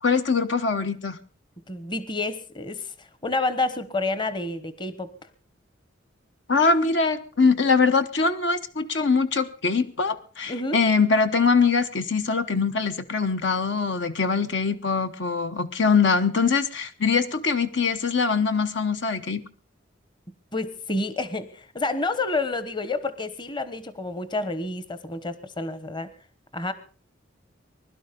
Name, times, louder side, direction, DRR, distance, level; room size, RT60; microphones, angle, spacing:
voice 1, 0.0-1.2 6.5-19.4, left 4 dB, 65° left, 9 dB, 1.0 m, -23 dB
voice 2, 1.7-5.1 10.5-10.8 20.5-26.1 26.5-26.7, left 2 dB, 25° left, 14 dB, 1.1 m, -29 dB
21.0 x 12.0 x 5.2 m, 0.41 s
head